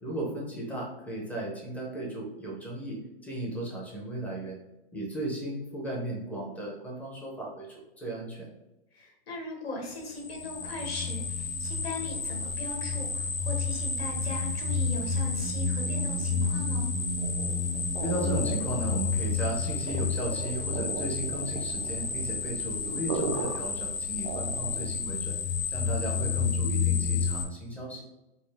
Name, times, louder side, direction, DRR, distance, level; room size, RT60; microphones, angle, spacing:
voice 1, 0.0-4.6 4.9-8.5 18.0-25.4 25.7-28.0, right 1 dB, 5° left, -3 dB, 0.6 m, -35 dB
voice 2, 8.9-16.9, left 1 dB, 85° left, 1 dB, 1.2 m, -39 dB
sound 1, 10.1-27.4, left 4 dB, 50° left, 0.8 m, -30 dB
sound 2, 17.2-25.0, right 5 dB, 45° right, 0.4 m, -38 dB
4.2 x 2.1 x 3.3 m, 0.99 s
hypercardioid pair, 145°, 30 cm